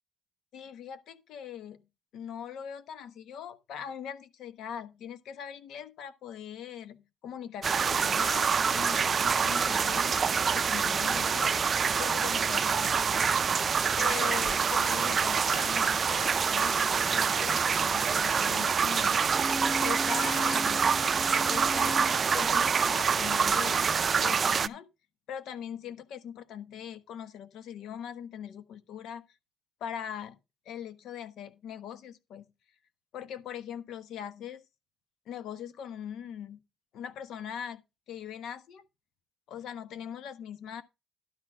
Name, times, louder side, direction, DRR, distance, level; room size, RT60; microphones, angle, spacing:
voice 1, 0.5-1.8 2.1-19.2 19.8-20.9 21.4-24.9 25.3-29.2 29.8-30.4 30.6-32.4 33.1-34.6 35.3-36.6 36.9-37.8 38.1-38.8 39.5-40.8, left 9 dB, 80° left, 1.3 m, -41 dB
sound 1, 7.6-24.7, right 6 dB, 45° right, 0.5 m, -26 dB
sound 2, 19.3-23.1 23.4-23.5, equal, 10° left, 1.2 m, -38 dB
12.0 x 4.3 x 6.3 m
cardioid pair, 90°, 0 cm